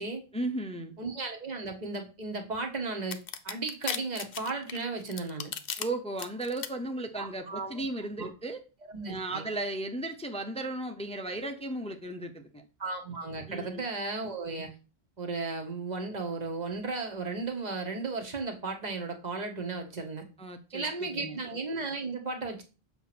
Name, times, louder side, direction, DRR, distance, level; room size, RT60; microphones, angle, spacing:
voice 1, 0.3-1.0 5.8-8.6 9.1-12.6 13.5-13.8 20.4-21.4, right 2 dB, 10° left, 5 dB, 0.5 m, -35 dB
voice 2, 1.0-5.5 7.1-7.8 8.2-8.3 8.9-9.4 12.8-14.7 15.2-20.2 20.7-22.6, right 3 dB, 45° right, 3 dB, 1.2 m, -35 dB
sound 1, 3.1-5.8 6.2-6.7, left 8 dB, 70° left, 0.8 m, -35 dB
7.2 x 2.9 x 5.9 m, 0.33 s
omnidirectional pair, 1.0 m